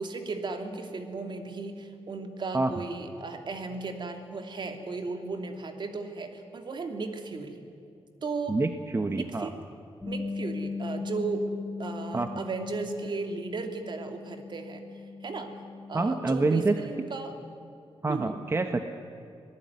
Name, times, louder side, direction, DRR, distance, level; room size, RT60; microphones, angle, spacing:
voice 1, 0.0-7.7 8.2-8.6 9.1-9.6 10.0-14.8 15.2-15.5 15.9-17.3 18.1-18.4, right 3 dB, 50° right, 5 dB, 2.8 m, -35 dB
voice 2, 8.5-9.5 12.1-12.3 15.9-16.7 18.0-18.8, right 3 dB, 25° right, 7 dB, 1.1 m, -26 dB
Bass guitar, 10.0-16.3, left 4 dB, 5° left, 4.1 m, -38 dB
26.5 x 18.5 x 9.6 m, 2.5 s
wide cardioid pair, 115°, 10 cm